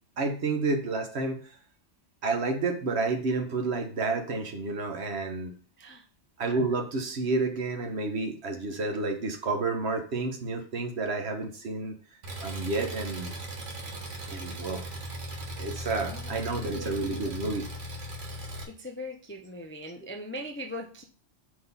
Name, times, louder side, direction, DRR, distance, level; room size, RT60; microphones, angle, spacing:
voice 1, 0.2-1.4 2.2-5.5 6.4-11.9 12.4-13.3 14.3-14.8 15.6-17.7, right 3 dB, 60° right, 5 dB, 1.3 m, -30 dB
Engine, 12.2-18.6, right 1 dB, 75° right, 1.6 m, -38 dB
voice 2, 16.0-16.9 18.6-21.0, left 1 dB, 15° left, 2 dB, 0.4 m, -40 dB
5.0 x 4.0 x 5.4 m, 0.41 s
omnidirectional pair, 1.2 m